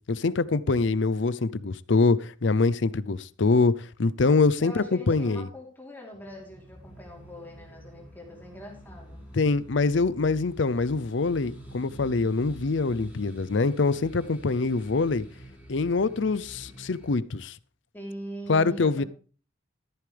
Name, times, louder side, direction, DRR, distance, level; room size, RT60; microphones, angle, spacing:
voice 1, 0.1-5.5 9.3-15.2 15.7-17.6 18.5-19.0, left 3 dB, 70° left, 0.6 m, -24 dB
voice 2, 4.6-9.2 17.9-19.1, equal, 10° left, 3.5 m, -42 dB
sound 1, 6.1-17.1, right 1 dB, 10° right, 3.9 m, -47 dB
14.0 x 11.5 x 3.4 m
head